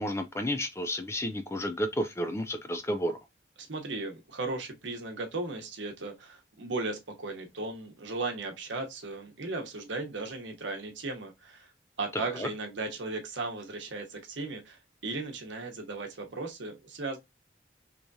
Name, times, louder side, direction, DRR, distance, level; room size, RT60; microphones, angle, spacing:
voice 1, 0.0-3.2 12.1-12.5, equal, 15° left, 0.3 m, -31 dB
voice 2, 3.7-11.7 12.0-17.2, right 3 dB, 85° right, 0.9 m, -36 dB
3.4 x 3.1 x 2.6 m
head